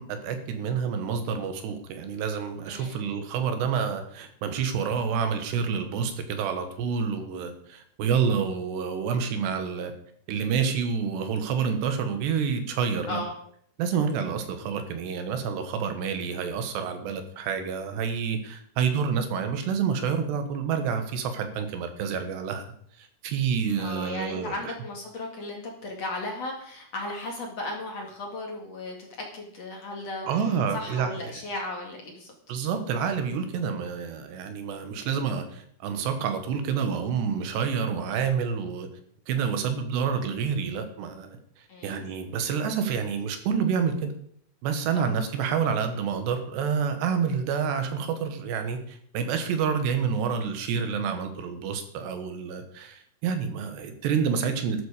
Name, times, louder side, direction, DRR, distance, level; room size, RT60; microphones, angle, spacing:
voice 1, 0.0-9.9 10.3-13.2 13.8-22.7 23.0-24.7 30.3-31.1 32.5-38.9 39.3-44.1 44.6-54.9, right 6 dB, 80° right, 7 dB, 3.6 m, -28 dB
voice 2, 2.7-3.0 13.1-13.3 23.8-29.1 29.3-30.4 30.7-32.3 41.7-42.0 44.9-45.1, left 2 dB, 45° left, 1 dB, 2.6 m, -36 dB
13.0 x 12.0 x 5.0 m, 0.64 s
omnidirectional pair, 4.9 m